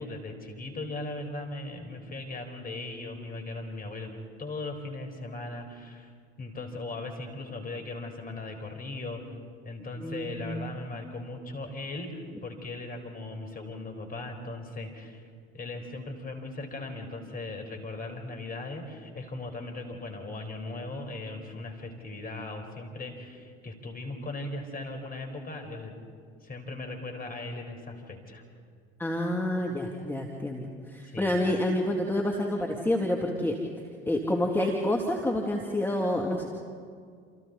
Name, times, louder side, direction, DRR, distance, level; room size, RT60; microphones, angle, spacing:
voice 1, 0.0-4.1 4.4-6.1 6.4-9.4 9.6-15.2 15.5-25.9 26.4-28.4 31.0-31.4, left 2 dB, 25° left, 4 dB, 4.5 m, -38 dB
voice 2, 10.0-10.6 29.0-33.6 34.1-36.5, left 1 dB, 5° left, 0 dB, 2.5 m, -28 dB
29.0 x 28.5 x 4.2 m, 2.1 s
hypercardioid pair, 75°, 32 cm